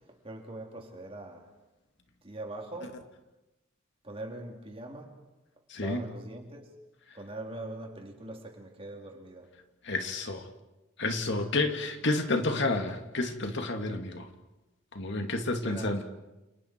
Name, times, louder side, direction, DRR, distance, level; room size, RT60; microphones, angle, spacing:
voice 1, 0.2-1.4 2.2-3.0 4.0-5.1 5.8-6.7 7.2-9.5 15.6-16.0, right 1 dB, 25° right, 2 dB, 3.5 m, -42 dB
voice 2, 5.7-6.1 9.8-10.4 11.0-14.3 14.9-16.0, left 2 dB, 60° left, 5 dB, 2.3 m, -30 dB
29.5 x 29.0 x 4.6 m, 1.0 s
head